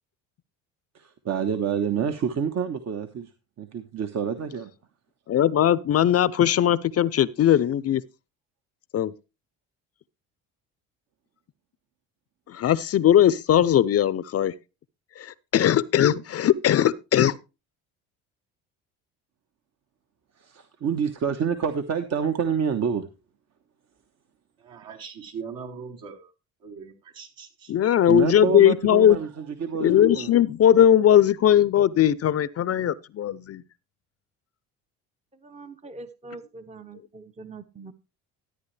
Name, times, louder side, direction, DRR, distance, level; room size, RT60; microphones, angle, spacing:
voice 1, 0.9-3.3 3.6-4.7 20.4-23.1 28.1-30.3, right 7 dB, 50° right, 1.2 m, -27 dB
voice 2, 5.3-8.0 8.9-9.1 12.5-14.5 15.2-17.4 27.7-29.2 29.8-33.6, left 10 dB, 45° left, 0.6 m, -19 dB
voice 3, 24.6-26.3 26.6-27.7, right 6 dB, 70° right, 3.9 m, -40 dB
voice 4, 35.3-37.9, right 3 dB, 20° right, 0.8 m, -43 dB
13.5 x 9.0 x 3.3 m
supercardioid pair, 85°, 35 cm